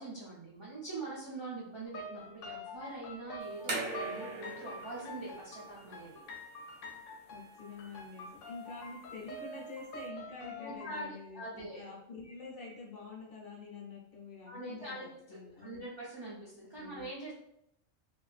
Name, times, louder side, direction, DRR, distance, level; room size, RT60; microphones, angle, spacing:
voice 1, 0.0-6.2 10.6-11.0 11.3-11.8 14.4-15.0 15.3-17.3, right 2 dB, 40° right, -7 dB, 0.3 m, -43 dB
sound 1, 1.9-11.0, left 1 dB, 80° left, 0.9 m, -46 dB
sound 2, 3.4-10.1, right 2 dB, 65° right, 1.0 m, -44 dB
voice 2, 7.3-15.8 16.7-17.1, left 3 dB, 55° left, -4 dB, 0.8 m, -47 dB
2.4 x 2.2 x 2.4 m, 0.75 s
omnidirectional pair, 1.3 m